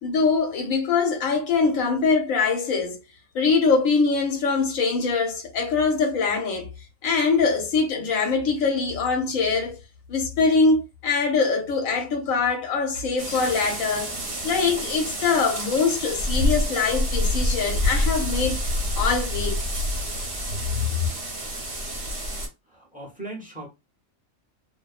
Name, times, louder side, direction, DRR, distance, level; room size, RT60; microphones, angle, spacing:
voice 1, 0.0-3.0 3.3-6.7 7.0-9.8 10.1-14.1 14.4-18.6 19.0-19.6, left 4 dB, 80° left, 1.2 m, -23 dB
sound 1, 13.2-22.5, left 1 dB, 50° right, 1.0 m, -27 dB
voice 2, 22.7-23.7, right 2 dB, 10° right, 0.7 m, -38 dB
2.6 x 2.1 x 2.4 m
omnidirectional pair, 1.4 m